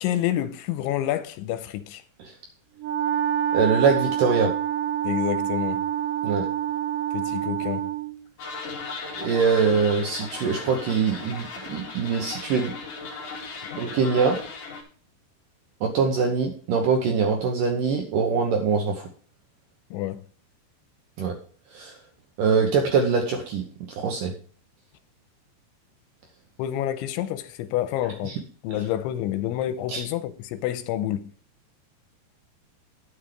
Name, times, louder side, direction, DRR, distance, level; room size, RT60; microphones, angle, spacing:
voice 1, 0.0-2.0 5.0-5.9 7.1-7.9 19.9-20.2 26.6-28.3 28.6-31.3, left 12 dB, 90° left, 3.1 m, -28 dB
Wind instrument woodwind instrument, 2.8-8.2, right 10 dB, 65° right, 2.6 m, -27 dB
voice 2, 3.5-4.5 6.2-6.5 9.2-12.7 13.8-14.4 15.8-19.1 21.2-21.4 21.7-22.0 22.4-24.3 28.2-28.4 29.9-30.0, right 5 dB, 80° right, 1.9 m, -23 dB
sound 1, 8.4-14.8, left 4 dB, 55° left, 3.0 m, -37 dB
9.9 x 7.2 x 5.1 m
omnidirectional pair, 5.4 m